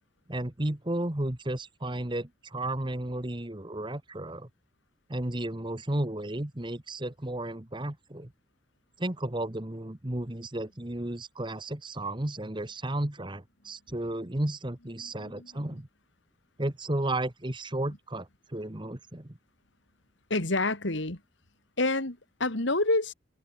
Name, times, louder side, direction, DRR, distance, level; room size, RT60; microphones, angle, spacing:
voice 1, 0.3-4.5 5.1-8.3 9.0-15.9 16.6-19.4, right 1 dB, 25° right, 1.4 m, -33 dB
voice 2, 15.0-15.7 20.3-21.2 21.8-23.1, left 2 dB, 60° left, 2.7 m, -28 dB
head